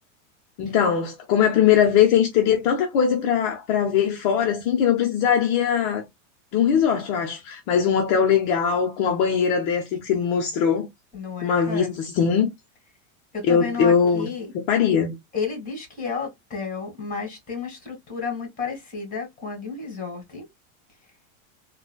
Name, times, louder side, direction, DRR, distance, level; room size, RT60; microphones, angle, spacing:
voice 1, 0.6-6.0 6.5-10.9 11.4-12.5 13.5-14.3 14.7-15.1, left 7 dB, 55° left, 0.9 m, -21 dB
voice 2, 11.1-12.0 13.3-14.5 15.3-20.5, left 5 dB, 20° left, 1.9 m, -32 dB
3.8 x 2.4 x 2.2 m
supercardioid pair, 120°, 41 cm